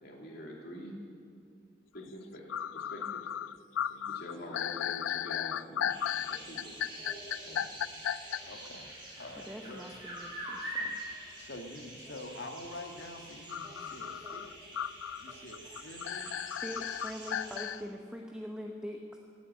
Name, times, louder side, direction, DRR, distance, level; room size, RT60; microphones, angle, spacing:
voice 1, 0.0-1.0 1.9-2.5 2.7-3.3 3.9-5.9 6.3-6.9 7.4-7.8, left 1 dB, 55° left, -2 dB, 2.7 m, -46 dB
sound 1, 2.1-2.2 2.5-8.4 13.5-17.8, left 9 dB, 90° left, 0.3 m, -35 dB
sound 2, 5.9-17.6, right 1 dB, 25° right, 5.0 m, -45 dB
voice 2, 8.4-8.9 9.2-9.8 11.4-14.6 15.2-16.4, left 1 dB, 70° left, 3 dB, 1.8 m, -46 dB
voice 3, 9.4-11.0 16.6-19.2, equal, 5° right, 1 dB, 0.9 m, -43 dB
18.5 x 8.3 x 8.9 m, 2.4 s
head